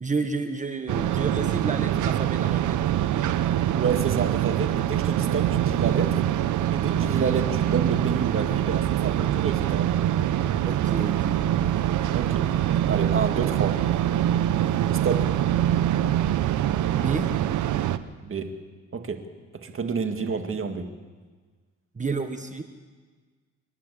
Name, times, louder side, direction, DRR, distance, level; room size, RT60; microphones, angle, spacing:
voice 1, 0.0-2.8 10.7-11.4 16.9-17.2 21.9-22.6, right 4 dB, 25° right, 7 dB, 1.5 m, -30 dB
sound 1, 0.9-18.0, right 11 dB, 75° right, 0.9 m, -24 dB
voice 2, 3.8-6.2 6.7-9.9 12.1-12.5 12.9-13.8 15.0-15.3 18.2-18.5 18.9-19.2 19.5-20.9, right 5 dB, 45° right, 6 dB, 2.2 m, -29 dB
27.5 x 11.5 x 8.5 m, 1.4 s
cardioid pair, 90°, 30 cm